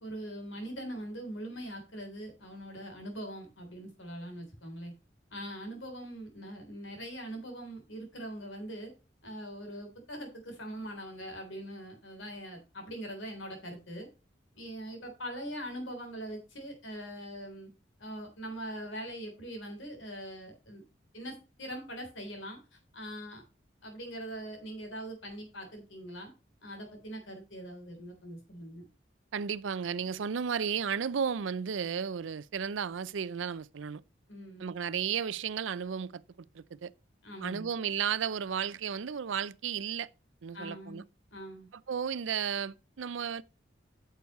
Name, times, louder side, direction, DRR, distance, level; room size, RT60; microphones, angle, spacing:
voice 1, 0.0-4.9 5.3-8.9 9.2-14.1 14.6-17.7 18.0-20.8 21.1-23.4 23.8-26.3 26.6-28.9 34.3-34.7 37.2-37.7 40.5-41.0 41.3-41.7, right 1 dB, 90° left, 3.6 m, -42 dB
voice 2, 29.3-34.0 34.6-36.2 36.5-36.9 37.4-40.1 40.4-41.0 41.7-43.4, right 7 dB, 85° right, 0.5 m, -33 dB
9.2 x 6.8 x 3.1 m
head